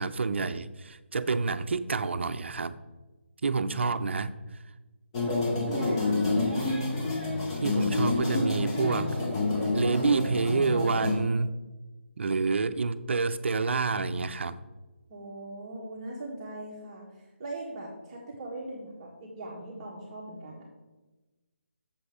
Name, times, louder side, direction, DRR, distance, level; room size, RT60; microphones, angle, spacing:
voice 1, 0.0-2.7 3.4-4.3 7.6-9.2 9.7-11.6 12.2-14.6, right 4 dB, 65° right, 12 dB, 0.6 m, -28 dB
sound 1, 5.1-11.1, left 2 dB, 25° left, 2.0 m, -28 dB
voice 2, 5.7-6.4 15.1-20.7, right 1 dB, 25° right, -4 dB, 1.7 m, -40 dB
7.8 x 7.1 x 4.9 m, 1.1 s
hypercardioid pair, 165°, 7 cm